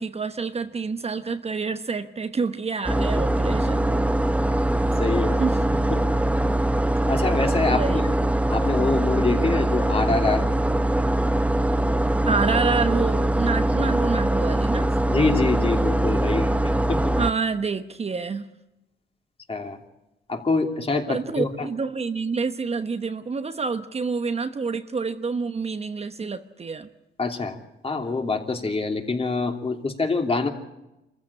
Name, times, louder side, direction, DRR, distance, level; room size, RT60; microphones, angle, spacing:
voice 1, 0.0-4.1 5.4-5.6 7.7-8.0 12.3-14.9 17.2-18.4 21.1-26.9, right 4 dB, 30° right, 8 dB, 1.0 m, -27 dB
sound 1, 2.8-17.3, right 1 dB, 5° right, 0.9 m, -22 dB
voice 2, 5.0-5.4 5.9-6.0 7.1-8.1 8.5-10.5 15.1-17.1 19.5-19.8 20.3-21.7 27.2-27.6 27.8-30.5, left 3 dB, 30° left, 3 dB, 3.1 m, -25 dB
25.0 x 15.0 x 8.7 m, 0.95 s
cardioid pair, 90°, 20 cm